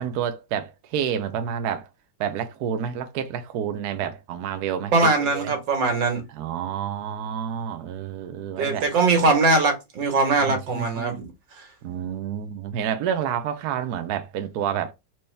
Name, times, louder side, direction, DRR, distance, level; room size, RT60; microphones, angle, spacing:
voice 1, 0.0-1.9 2.2-5.5 6.3-8.9 10.4-11.2 11.8-14.9, right 8 dB, 65° right, 1.1 m, -29 dB
voice 2, 4.9-6.2 8.6-11.2, right 3 dB, 90° right, 2.1 m, -21 dB
4.6 x 3.0 x 3.3 m
omnidirectional pair, 2.0 m